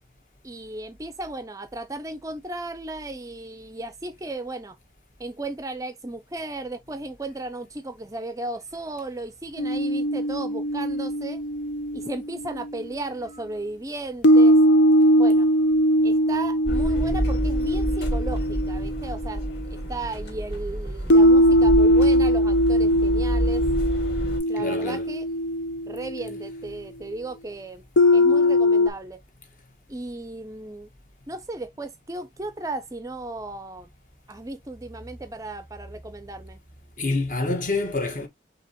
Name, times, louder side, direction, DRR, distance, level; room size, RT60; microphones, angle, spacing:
voice 1, 0.4-4.8 5.2-11.4 11.9-14.6 15.2-15.5 16.0-19.4 19.7-23.6 24.5-25.3 25.9-27.8 28.1-29.2 29.9-30.9 31.3-33.9 34.3-36.6, right 2 dB, 20° right, 0.4 m, -35 dB
sound 1, 9.6-12.8 14.2-19.7 21.1-26.5 28.0-28.9, equal, 80° left, 0.6 m, -20 dB
sound 2, 16.7-24.4, equal, 60° left, 2.7 m, -28 dB
voice 2, 24.6-25.2 37.0-38.3, left 3 dB, 45° left, 1.3 m, -27 dB
5.9 x 2.8 x 2.9 m
head